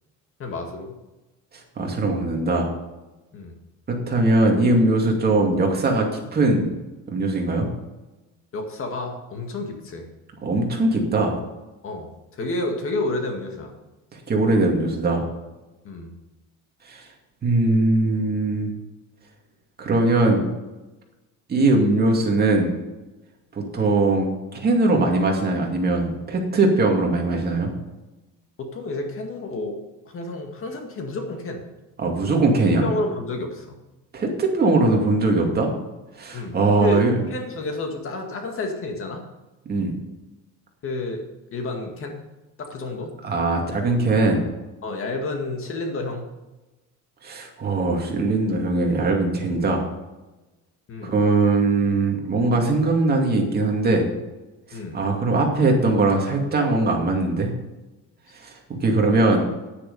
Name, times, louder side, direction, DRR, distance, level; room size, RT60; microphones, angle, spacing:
voice 1, 0.4-1.0 3.3-3.5 8.5-10.1 11.8-13.7 15.8-16.1 28.6-29.8 30.1-31.6 32.8-33.8 36.3-39.2 40.8-41.2 41.5-42.2 42.6-43.1 44.8-46.2 50.9-51.1 54.7-55.0 58.9-59.3, left 2 dB, 40° left, 3 dB, 2.0 m, -30 dB
voice 2, 1.8-2.7 3.9-6.7 7.1-7.7 10.4-11.3 14.3-15.3 16.9-17.0 17.4-18.7 19.8-20.4 21.5-22.7 23.5-27.7 32.0-32.9 34.1-35.7 36.2-37.1 39.7-39.9 43.2-44.4 47.2-49.8 51.0-54.1 54.7-57.5 58.4-58.5 58.8-59.5, right 2 dB, 30° right, 1 dB, 2.4 m, -20 dB
10.0 x 9.8 x 5.5 m, 1.1 s
cardioid pair, 150°, 33 cm